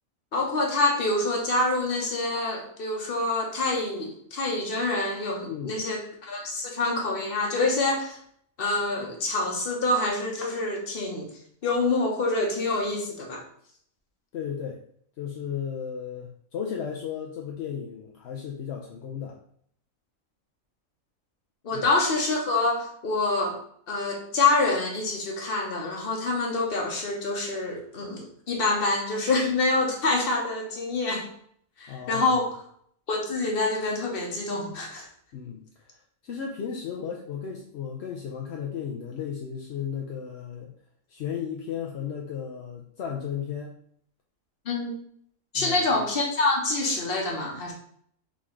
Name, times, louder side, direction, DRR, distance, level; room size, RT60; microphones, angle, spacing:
voice 1, 0.3-8.2 8.6-11.3 11.6-13.4 21.6-23.6 23.9-31.3 31.8-32.6 33.1-35.1 44.6-45.0 45.5-47.7, left 2 dB, 45° left, 0 dB, 1.1 m, -26 dB
voice 2, 14.3-14.8 15.2-19.4 21.7-21.8 31.9-32.4 35.3-35.6 36.2-40.7 41.1-43.7 45.5-45.9, left 7 dB, 65° left, 0 dB, 0.7 m, -34 dB
4.1 x 3.6 x 3.0 m, 0.64 s
omnidirectional pair, 1.5 m